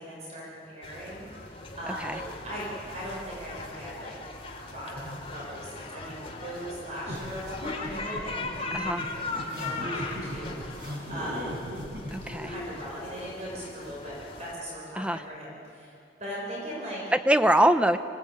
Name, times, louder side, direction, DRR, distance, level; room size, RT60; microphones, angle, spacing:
voice 1, 0.0-4.1 4.7-8.9 9.4-11.6 12.3-17.0, equal, 40° right, -5 dB, 6.4 m, -39 dB
sound 1, 0.8-14.5, left 3 dB, 35° left, 2.8 m, -39 dB
sound 2, 7.1-12.4, equal, 60° right, 7.2 m, -37 dB
voice 2, 12.1-12.5 15.0-15.2 17.1-18.0, right 1 dB, 5° right, 9 dB, 0.8 m, -23 dB
26.0 x 17.5 x 8.8 m, 2.5 s
head